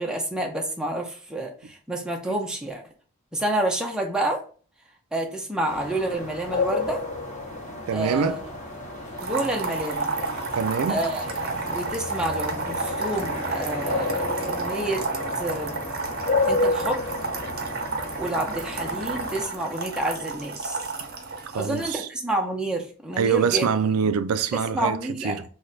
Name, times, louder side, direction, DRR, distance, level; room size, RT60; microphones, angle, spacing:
voice 1, 0.0-2.8 3.3-4.4 5.1-7.1 7.9-8.4 9.2-10.1 10.9-15.0 15.3-15.8 16.5-17.1 18.2-20.8 21.5-23.7 24.0-24.1 24.5-25.4, right 1 dB, 5° right, 0.6 m, -29 dB
sound 1, 5.6-19.5, left 2 dB, 35° left, 0.8 m, -31 dB
voice 2, 7.9-8.4 10.5-11.0 21.5-22.1 23.2-25.4, right 6 dB, 80° right, 0.4 m, -24 dB
sound 2, 9.2-21.9, right 4 dB, 45° right, 0.7 m, -32 dB
3.1 x 2.2 x 3.8 m
head